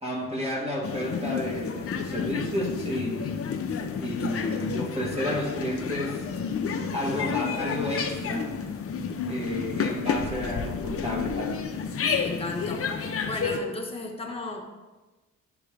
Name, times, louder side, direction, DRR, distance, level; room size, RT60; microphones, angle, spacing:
voice 1, 0.0-3.4 4.0-6.3 6.9-8.6 9.3-11.7, left 1 dB, 20° right, -3 dB, 1.8 m, -31 dB
sound 1, 0.8-13.6, left 6 dB, 45° left, 0.8 m, -30 dB
voice 2, 12.2-13.0 13.3-14.6, left 2 dB, 20° left, 0 dB, 1.4 m, -34 dB
10.5 x 3.6 x 3.4 m, 1.1 s
supercardioid pair, 70°, 31 cm